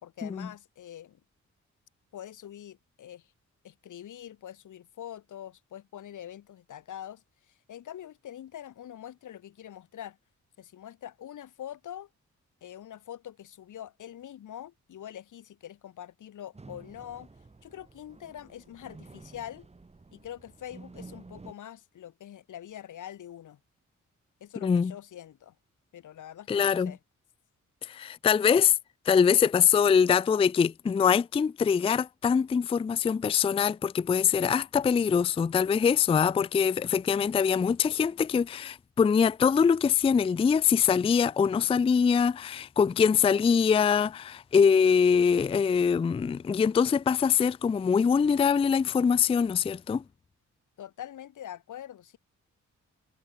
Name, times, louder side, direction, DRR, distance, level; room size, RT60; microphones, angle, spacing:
voice 1, 0.0-1.2 2.1-3.3 3.6-7.2 7.7-10.2 10.6-12.1 12.6-17.3 17.6-19.7 20.1-23.6 24.4-25.5 25.9-27.0 50.8-52.2, left 11 dB, 90° left, 3.9 m, -44 dB
sound 1, 16.5-21.5, right 3 dB, 20° right, 2.9 m, -50 dB
voice 2, 24.6-24.9 26.5-26.9 27.8-28.7 29.1-50.0, left 6 dB, 20° left, 0.3 m, -23 dB
cardioid pair, 115°, 30 cm